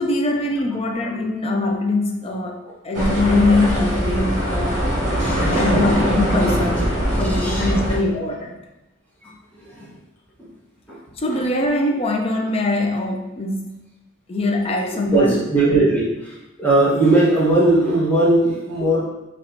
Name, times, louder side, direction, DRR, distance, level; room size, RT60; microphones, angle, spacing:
voice 1, 0.0-4.8 5.5-8.6 11.2-13.9 14.3-15.4, left 2 dB, 30° left, 2 dB, 0.5 m, -22 dB
sound 1, 2.9-8.0, equal, 45° right, 1.5 m, -21 dB
voice 2, 5.2-5.8 7.2-7.7 8.1-8.3 9.2-9.3 9.6-10.0 10.9-11.0 14.9-19.0, right 2 dB, 10° left, -8 dB, 1.1 m, -19 dB
4.3 x 3.1 x 2.7 m, 1.0 s
head